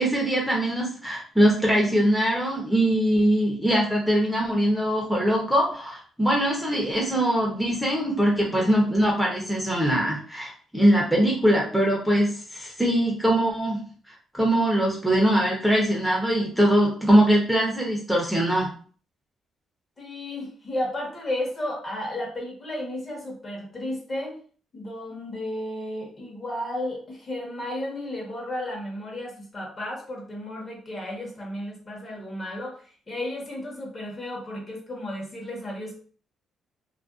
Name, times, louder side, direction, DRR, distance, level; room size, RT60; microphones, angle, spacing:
voice 1, 0.0-13.8 14.3-18.7, right 1 dB, ahead, -3 dB, 0.7 m, -22 dB
voice 2, 20.0-24.4 24.7-36.0, left 1 dB, 35° left, -1 dB, 1.0 m, -33 dB
2.5 x 2.2 x 2.3 m, 0.43 s
cardioid pair, 90°, 0 cm